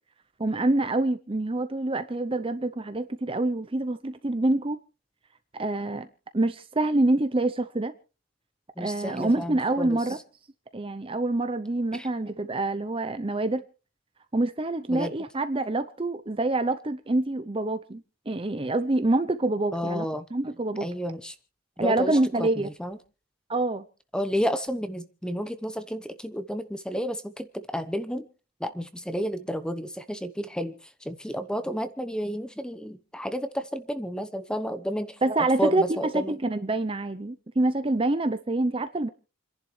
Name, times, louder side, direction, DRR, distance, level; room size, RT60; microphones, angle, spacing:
voice 1, 0.4-4.8 5.5-6.1 6.3-7.9 8.8-10.2 10.7-13.6 14.3-20.9 21.8-22.7 23.5-23.8 35.2-39.1, right 2 dB, 25° right, 10 dB, 0.6 m, -26 dB
voice 2, 8.8-10.0 11.9-12.1 14.9-15.1 19.7-20.3 20.8-21.3 21.8-23.0 24.1-28.3 28.6-36.4, equal, 5° left, 11 dB, 1.0 m, -31 dB
29.0 x 11.0 x 3.3 m, 0.35 s
head